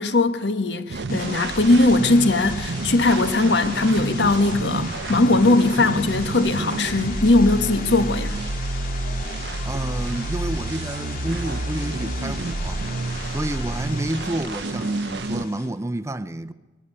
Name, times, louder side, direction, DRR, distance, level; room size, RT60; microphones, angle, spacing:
voice 1, 0.0-8.4, left 2 dB, 75° left, 1.5 m, -19 dB
sound 1, 0.9-15.5, right 2 dB, 75° right, 0.7 m, -29 dB
sound 2, 1.1-15.7, left 3 dB, 50° left, 3.2 m, -37 dB
voice 2, 9.6-12.9 13.3-16.5, right 1 dB, 15° right, 0.6 m, -29 dB
21.0 x 15.5 x 9.6 m
head